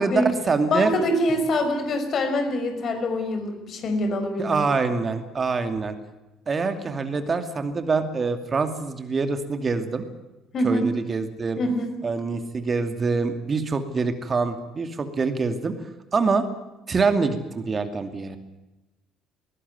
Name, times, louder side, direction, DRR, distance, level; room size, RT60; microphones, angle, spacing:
voice 1, 0.0-0.9 4.4-5.9 6.5-10.1 10.6-11.6 12.0-15.8 16.1-16.5 16.9-18.4, right 4 dB, 35° right, 8 dB, 2.5 m, -25 dB
voice 2, 0.7-4.7 10.5-10.9 11.6-11.9, left 1 dB, 45° left, 7 dB, 5.3 m, -25 dB
21.0 x 18.5 x 9.6 m, 1.0 s
figure-of-eight pair, 55°, 0 cm